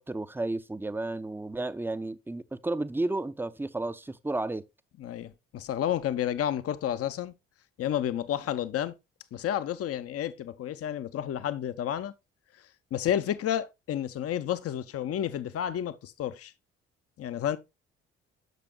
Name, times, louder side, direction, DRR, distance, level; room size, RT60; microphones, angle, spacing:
voice 1, 0.0-4.6, right 2 dB, 5° right, 0.6 m, -32 dB
voice 2, 5.0-7.3 7.8-8.9 9.3-12.1 12.9-16.5 17.2-17.6, left 10 dB, 45° left, 0.8 m, -31 dB
9.2 x 6.8 x 2.2 m
hypercardioid pair, 45°, 32 cm